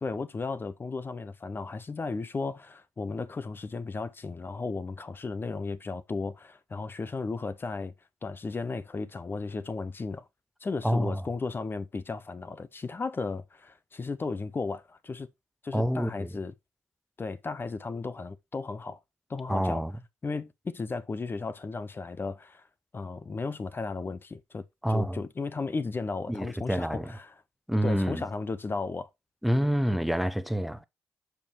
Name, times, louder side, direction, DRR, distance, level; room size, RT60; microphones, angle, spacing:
voice 1, 0.0-7.9 8.2-10.3 10.6-15.3 15.6-16.5 17.2-19.0 19.3-19.8 20.2-22.7 22.9-24.6 24.9-27.3 27.8-29.1, left 4 dB, 40° left, 0.9 m, -35 dB
voice 2, 10.8-11.2 15.7-16.3 19.5-19.9 24.8-25.2 26.3-27.1 27.7-28.2 29.4-30.8, equal, ahead, 0.8 m, -27 dB
7.1 x 4.7 x 4.5 m
hypercardioid pair, 40°, 6 cm